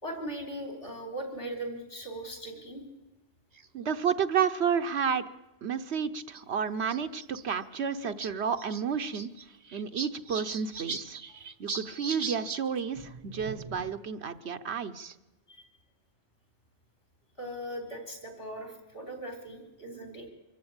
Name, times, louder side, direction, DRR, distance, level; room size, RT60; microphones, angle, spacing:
voice 1, 0.0-2.8 11.3-11.4 15.5-15.7 17.4-20.3, right 1 dB, 55° left, 5 dB, 4.4 m, -39 dB
sound 1, 3.6-3.9 4.8-4.9 5.1-5.2 6.3-6.4 6.8-7.4 7.7-7.8 8.0-8.3 8.6-12.6 12.9-14.0, right 5 dB, 40° right, 0.9 m, -39 dB
voice 2, 3.7-5.2 5.6-9.3 9.7-11.2 11.6-15.1, right 7 dB, 70° right, 9 dB, 1.2 m, -31 dB
24.5 x 14.5 x 8.8 m, 1.1 s
omnidirectional pair, 1.1 m